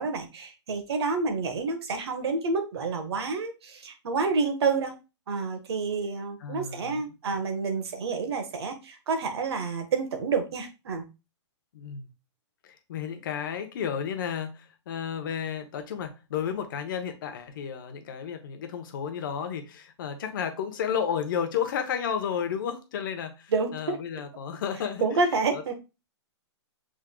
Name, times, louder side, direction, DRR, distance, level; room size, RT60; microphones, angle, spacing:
voice 1, 0.0-4.9 5.3-11.0 23.5-24.0 25.0-25.7, right 4 dB, 60° right, 1.3 m, -29 dB
voice 2, 6.4-7.0 11.7-12.1 12.6-25.0 25.5-25.7, left 8 dB, 45° left, 0.9 m, -32 dB
6.3 x 3.7 x 2.2 m
hypercardioid pair, 165°, 15 cm